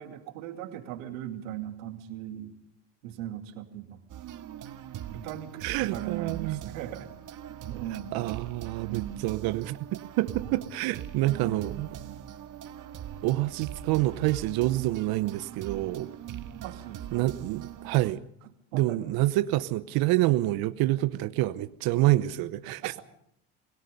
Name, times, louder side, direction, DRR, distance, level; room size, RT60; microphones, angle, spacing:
voice 1, 0.0-2.5 3.0-4.0 5.1-8.2 8.8-9.3 10.4-10.6 11.2-12.2 16.6-17.3 18.7-19.0 20.9-21.0 22.7-23.0, right 12 dB, 85° right, 2.6 m, -39 dB
sound 1, 4.1-18.1, right 10 dB, 50° right, 1.8 m, -42 dB
voice 2, 5.6-6.6 8.1-9.8 10.2-11.9 13.2-16.1 17.1-18.2 18.7-22.9, right 17 dB, 65° right, 0.9 m, -27 dB
28.5 x 17.5 x 5.3 m
supercardioid pair, 85°, 39 cm